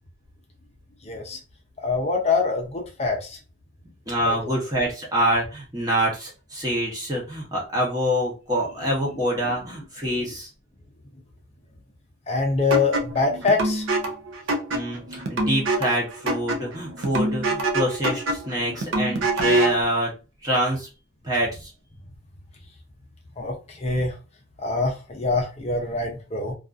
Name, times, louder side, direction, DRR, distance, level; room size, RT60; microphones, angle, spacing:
voice 1, 1.0-1.4 1.8-3.4 4.3-4.4 12.3-13.9 23.4-24.1 24.6-26.5, left 3 dB, 30° left, 0.5 m, -24 dB
voice 2, 4.1-10.5 14.7-20.1 20.4-20.9 21.2-21.7, equal, 20° right, 0.8 m, -26 dB
sound 1, 12.7-19.8, right 2 dB, 70° right, 0.5 m, -25 dB
2.4 x 2.4 x 2.4 m
head